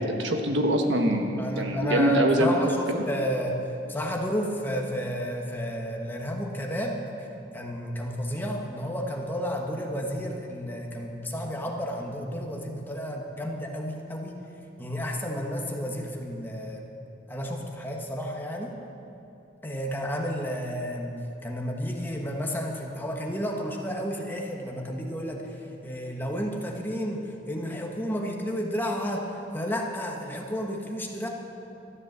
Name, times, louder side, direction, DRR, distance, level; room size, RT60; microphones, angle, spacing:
voice 1, 0.0-2.6 2.9-3.0, right 1 dB, 75° right, 3 dB, 1.4 m, -24 dB
voice 2, 1.4-7.0 7.5-14.4 14.8-16.9 17.3-18.7 19.6-31.3, equal, 10° left, 0 dB, 1.3 m, -31 dB
13.5 x 10.5 x 7.4 m, 2.9 s
head